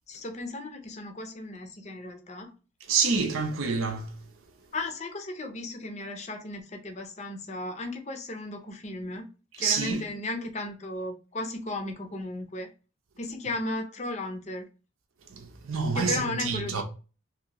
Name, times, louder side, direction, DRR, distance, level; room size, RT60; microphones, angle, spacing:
voice 1, 0.1-2.5 4.7-9.3 9.6-12.7 13.2-14.6 15.9-16.8, left 2 dB, 30° left, 0.6 m, -35 dB
voice 2, 2.9-4.1 9.6-10.0 15.3-16.8, right 5 dB, 75° right, 0.7 m, -27 dB
2.8 x 2.6 x 2.9 m
head